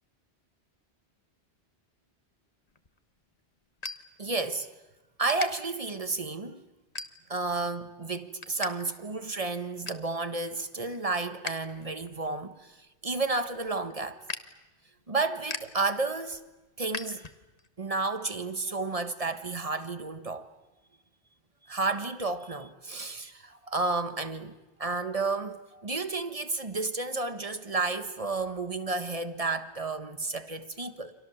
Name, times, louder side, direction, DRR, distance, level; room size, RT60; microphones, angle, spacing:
sound 1, 2.7-4.7 5.0-5.5 6.0-6.3 6.8-7.5 7.9-8.7 9.0-9.1 9.5-10.1 10.6-11.5 11.9-17.7, left 3 dB, 35° left, 1.4 m, -41 dB
voice 1, 4.2-4.7 5.2-6.6 7.3-14.2 15.1-16.4 16.8-17.3 17.8-20.5 21.7-24.5 24.8-31.1, right 3 dB, 30° right, 1.5 m, -32 dB
29.5 x 26.5 x 7.2 m
omnidirectional pair, 1.2 m